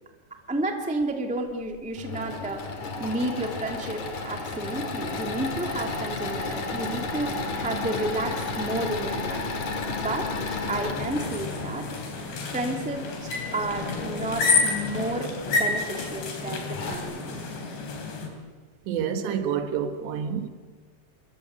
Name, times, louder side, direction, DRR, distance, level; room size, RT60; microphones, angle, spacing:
voice 1, 0.5-9.5 9.9-10.3 10.7-12.0 12.5-17.4, right 2 dB, 5° right, 0.6 m, -31 dB
Engine / Mechanisms, 1.7-12.1 13.7-14.4 15.0-15.1 15.4-15.5 16.3-16.4 16.7-17.0, left 3 dB, 45° left, 3.7 m, -32 dB
sound 1, 10.9-18.3, left 4 dB, 65° left, 5.8 m, -29 dB
voice 2, 18.9-20.5, right 8 dB, 70° right, 3.6 m, -28 dB
28.5 x 23.5 x 8.2 m
omnidirectional pair, 5.5 m